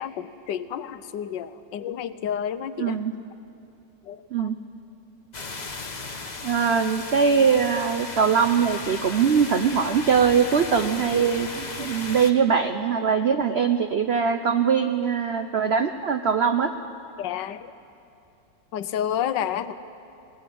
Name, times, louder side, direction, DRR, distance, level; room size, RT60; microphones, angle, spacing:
voice 1, 0.0-3.0 4.1-4.5 17.2-17.7 18.7-19.7, left 9 dB, 80° left, 13 dB, 1.4 m, -30 dB
voice 2, 2.8-3.1 4.3-4.6 6.4-16.7, right 6 dB, 75° right, 8 dB, 0.5 m, -22 dB
sound 1, 5.3-12.3, left 3 dB, 30° left, 1.0 m, -35 dB
19.5 x 18.5 x 9.3 m, 2.6 s
omnidirectional pair, 2.0 m